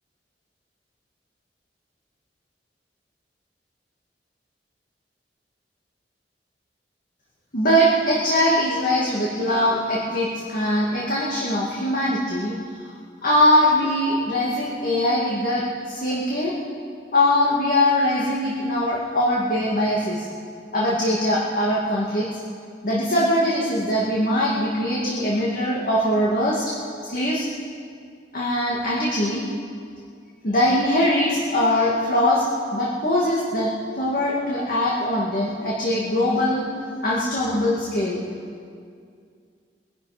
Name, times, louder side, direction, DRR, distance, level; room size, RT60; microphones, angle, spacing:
voice 1, 7.5-12.6 13.2-16.5 17.1-20.3 20.7-22.3 22.8-26.7 27.1-27.5 28.3-29.4 30.4-32.4 32.7-36.7 37.0-38.2, left 1 dB, 50° left, -5 dB, 2.0 m, -22 dB
21.5 x 11.0 x 5.0 m, 2.3 s
head